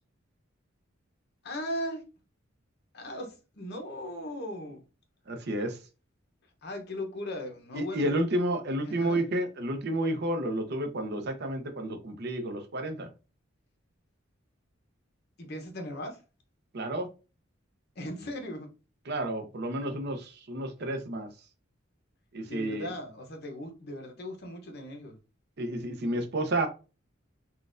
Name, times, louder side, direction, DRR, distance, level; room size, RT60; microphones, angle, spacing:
voice 1, 1.4-2.0 2.9-4.8 6.6-8.2 8.8-9.2 15.4-16.2 18.0-18.7 22.5-25.2, left 1 dB, 50° left, 0.8 m, -38 dB
voice 2, 5.3-5.8 7.7-13.1 16.7-17.1 19.1-21.3 22.3-22.9 25.6-26.7, right 1 dB, 50° right, 0.6 m, -31 dB
3.9 x 2.3 x 2.5 m
head